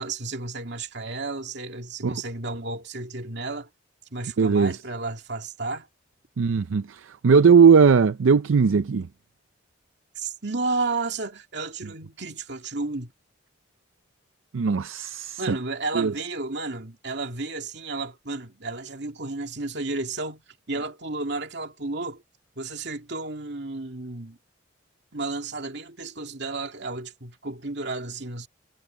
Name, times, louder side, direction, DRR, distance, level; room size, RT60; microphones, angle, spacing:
voice 1, 0.0-3.7 4.1-5.9 10.1-13.1 15.4-20.4 20.7-22.2 22.6-24.4 25.1-28.5, right 3 dB, 60° right, 2.5 m, -32 dB
voice 2, 4.4-4.8 6.4-9.1 14.5-15.6 15.9-16.1, right 5 dB, 80° right, 0.5 m, -18 dB
head